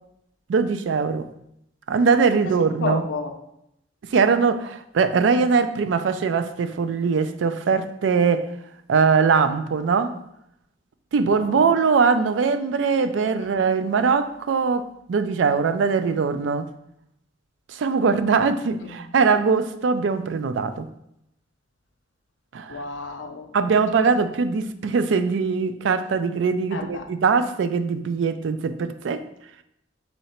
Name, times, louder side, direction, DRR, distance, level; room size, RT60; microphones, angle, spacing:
voice 1, 0.5-1.3 1.9-3.0 4.1-8.5 8.9-10.2 11.1-16.7 17.7-20.9 22.5-22.8 23.5-29.2, right 5 dB, 70° right, 0.4 m, -21 dB
voice 2, 2.8-3.4 11.3-11.7 13.4-13.5 18.8-19.0 22.7-23.5 26.7-27.1, left 4 dB, 80° left, 0.5 m, -31 dB
4.2 x 2.8 x 4.3 m
head